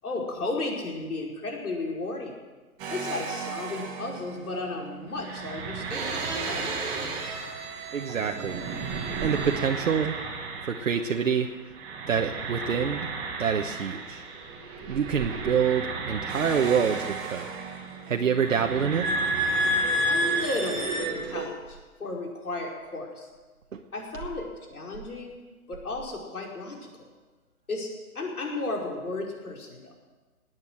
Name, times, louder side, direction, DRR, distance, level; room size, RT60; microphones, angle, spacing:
voice 1, 0.0-2.3 2.9-6.1 6.4-6.7 20.1-23.3 23.9-25.4 25.7-27.1 27.7-29.9, left 2 dB, 75° left, -1 dB, 5.5 m, -34 dB
sound 1, 2.8-11.5 11.7-21.5, right 2 dB, 10° right, 1.2 m, -32 dB
voice 2, 7.9-8.6 9.2-10.2 10.6-11.7 12.1-13.1 13.4-14.3 14.9-17.5 18.1-19.1 23.7-23.8, right 7 dB, 60° right, 4 dB, 1.2 m, -26 dB
18.5 x 9.5 x 7.9 m, 1.3 s
hypercardioid pair, 165°, 44 cm